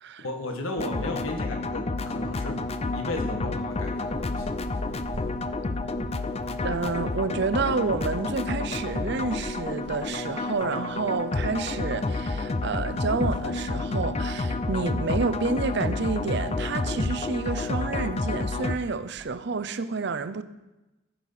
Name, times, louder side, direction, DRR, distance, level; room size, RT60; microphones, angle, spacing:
voice 1, 0.2-2.6 2.8-4.5, left 2 dB, 90° left, 1.6 m, -34 dB
sound 1, 0.8-18.8, left 3 dB, 30° left, 0.5 m, -30 dB
sound 2, 3.7-19.3, right 1 dB, 35° right, 0.9 m, -48 dB
voice 2, 6.6-20.4, right 4 dB, 60° right, 0.6 m, -29 dB
14.5 x 6.3 x 5.6 m
head